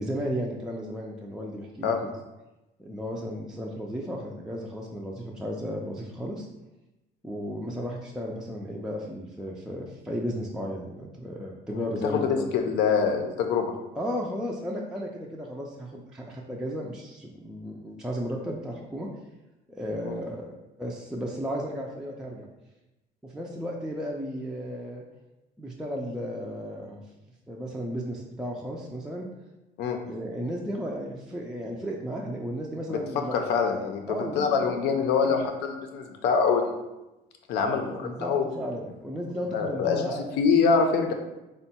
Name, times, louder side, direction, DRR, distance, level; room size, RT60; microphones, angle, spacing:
voice 1, 0.0-2.1 2.8-6.5 7.2-12.7 13.9-19.1 19.7-20.5 20.8-22.5 23.2-25.0 25.6-27.0 27.5-29.3 30.1-33.4 34.1-35.4 37.6-40.3, equal, 5° right, -2 dB, 0.3 m, -34 dB
voice 2, 11.7-13.7 20.0-20.2 29.8-30.0 32.9-33.0 33.3-36.7 37.5-38.4 39.5-40.0 40.4-41.1, left 5 dB, 80° left, 4 dB, 0.6 m, -25 dB
3.6 x 2.2 x 4.2 m, 1.0 s
cardioid pair, 110°, 17 cm